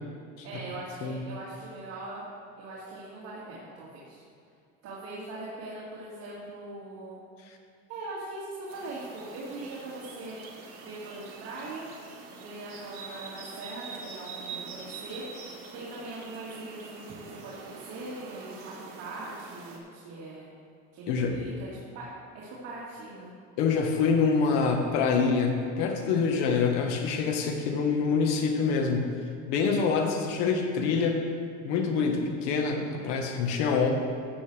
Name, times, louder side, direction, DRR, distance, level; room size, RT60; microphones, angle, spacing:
voice 1, 0.4-2.3 2.6-4.2 4.8-7.2 7.9-10.4 10.8-11.9 12.3-20.5 20.9-21.7 21.9-23.3, right 2 dB, 55° right, -7 dB, 2.3 m, -41 dB
sound 1, 8.7-19.8, right 5 dB, 70° right, 1.8 m, -44 dB
voice 2, 23.6-29.1 29.5-31.2 31.6-33.9, left 5 dB, 75° left, 3 dB, 1.4 m, -26 dB
13.0 x 8.0 x 3.4 m, 2.4 s
cardioid pair, 145°, 29 cm